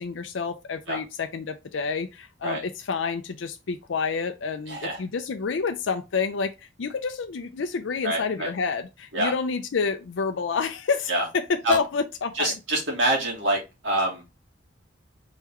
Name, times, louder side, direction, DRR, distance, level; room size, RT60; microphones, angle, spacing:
voice 1, 0.0-12.5, left 5 dB, 75° left, 0.5 m, -29 dB
voice 2, 4.7-5.0 8.0-8.5 9.1-9.3 11.1-11.3 11.6-11.8 12.3-14.2, right 1 dB, 75° right, 2.5 m, -25 dB
4.4 x 3.8 x 3.0 m
head